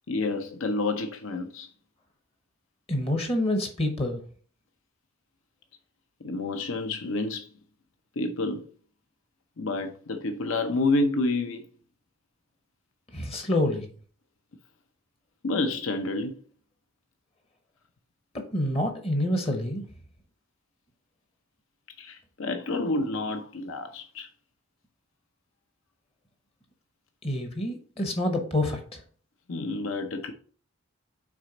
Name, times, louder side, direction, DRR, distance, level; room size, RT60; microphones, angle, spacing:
voice 1, 0.1-1.7 6.2-7.5 8.2-8.7 9.6-11.6 15.4-16.4 22.0-24.3 29.5-30.3, left 2 dB, 70° left, 0.6 m, -29 dB
voice 2, 2.9-4.2 13.1-13.9 18.5-19.8 27.2-29.0, left 1 dB, 30° left, 0.9 m, -27 dB
6.1 x 4.2 x 3.9 m
head